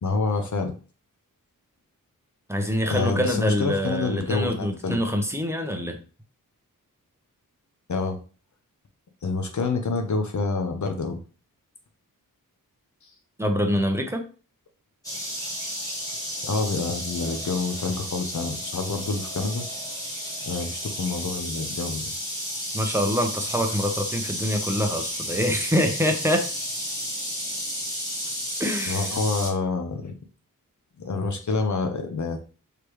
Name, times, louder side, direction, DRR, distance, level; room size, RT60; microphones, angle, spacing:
voice 1, 0.0-0.7 2.9-5.0 7.9-8.2 9.2-11.2 13.0-13.1 16.4-19.6 20.4-22.1 28.9-30.1 31.0-32.4, left 3 dB, 55° left, 4 dB, 0.8 m, -27 dB
voice 2, 2.5-6.0 13.4-14.2 22.7-26.5 28.6-29.1, equal, 10° right, 4 dB, 0.8 m, -25 dB
sound 1, 15.0-29.5, equal, 10° left, 1.7 m, -32 dB
4.8 x 3.4 x 3.1 m, 0.37 s
wide cardioid pair, 95°, 35 cm